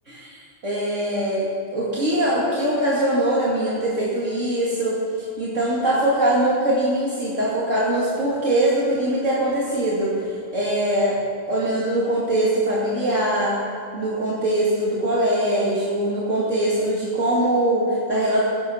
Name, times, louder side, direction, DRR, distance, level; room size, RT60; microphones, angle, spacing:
voice 1, 0.6-5.0 5.4-11.2 11.5-13.6 13.9-18.4, right 1 dB, 65° right, -7 dB, 2.7 m, -22 dB
17.0 x 10.5 x 6.3 m, 2.3 s
omnidirectional pair, 1.4 m